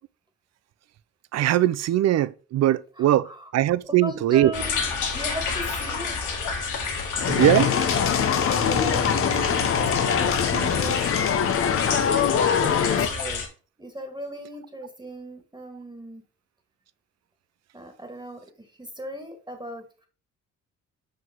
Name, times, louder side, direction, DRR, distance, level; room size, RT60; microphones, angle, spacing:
voice 1, 1.3-4.5 7.3-7.7 10.5-10.7, right 13 dB, 60° right, 0.5 m, -21 dB
voice 2, 3.0-3.5 3.9-4.8 5.1-6.2 8.5-9.2 9.8-10.3 10.7-11.8 12.5-13.4 13.8-16.2 17.7-20.1, equal, 15° right, 1.8 m, -38 dB
sound 1, 4.5-13.5, left 4 dB, 80° left, 1.8 m, -30 dB
sound 2, 7.2-13.1, left 8 dB, 45° left, 0.7 m, -23 dB
5.8 x 5.2 x 3.8 m
cardioid pair, 90°, 30 cm